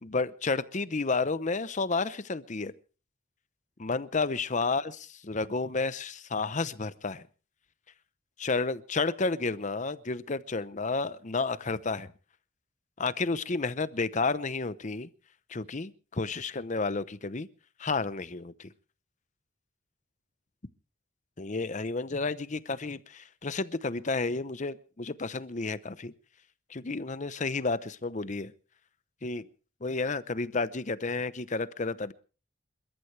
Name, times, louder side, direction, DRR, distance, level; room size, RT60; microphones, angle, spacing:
voice 1, 0.0-2.7 3.8-4.9 5.3-7.2 8.4-12.1 13.0-15.1 15.5-17.5 17.8-18.7 21.4-26.1 26.7-28.5 29.2-29.5 29.8-32.1, left 3 dB, 40° left, 0.8 m, -31 dB
28.0 x 13.5 x 3.3 m
head